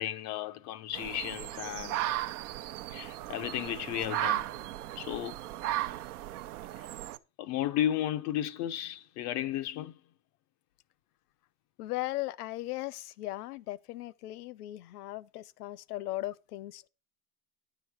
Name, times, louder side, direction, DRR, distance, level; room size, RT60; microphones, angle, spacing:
voice 1, 0.0-2.0 2.9-4.5 5.0-5.4 6.8-6.9 7.4-10.0, left 12 dB, 35° left, 0.5 m, -34 dB
Fox in spring night, 0.9-7.2, right 14 dB, 65° right, 0.8 m, -36 dB
voice 2, 11.8-16.9, left 17 dB, 70° left, 0.8 m, -37 dB
10.0 x 7.9 x 4.4 m
hypercardioid pair, 100°, 48 cm